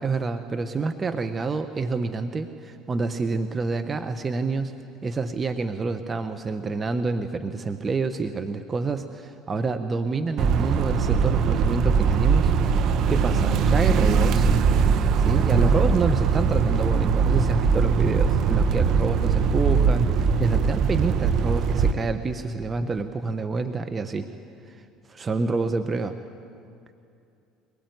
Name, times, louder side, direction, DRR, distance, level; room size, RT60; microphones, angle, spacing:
voice 1, 0.0-12.5 12.8-14.5 15.2-24.3 24.7-24.8 25.1-26.1, right 4 dB, 30° right, 8 dB, 1.2 m, -28 dB
sound 1, 10.4-21.9, right 5 dB, 60° right, 1.2 m, -21 dB
24.0 x 20.0 x 9.5 m, 2.5 s
hypercardioid pair, 75°, 0 cm